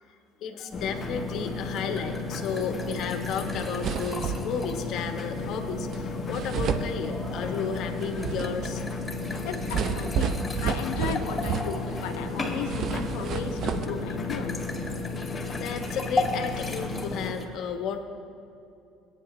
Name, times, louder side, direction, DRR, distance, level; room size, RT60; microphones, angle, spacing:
voice 1, 0.4-8.8 9.3-9.5 15.5-18.0, left 6 dB, 60° left, 5 dB, 1.2 m, -33 dB
sound 1, 0.7-17.3, left 3 dB, 35° left, 1.5 m, -34 dB
sound 2, 1.0-17.4, left 2 dB, 15° left, 2.4 m, -38 dB
sound 3, 3.2-3.3 3.5-4.7 5.9-6.0 6.3-7.5 7.9-12.1 12.4-13.9, right 7 dB, 55° right, 0.7 m, -31 dB
voice 2, 9.4-14.6, left 7 dB, 75° left, 6 dB, 0.9 m, -35 dB
18.0 x 9.5 x 3.2 m, 2.6 s
hypercardioid pair, 70°, 0 cm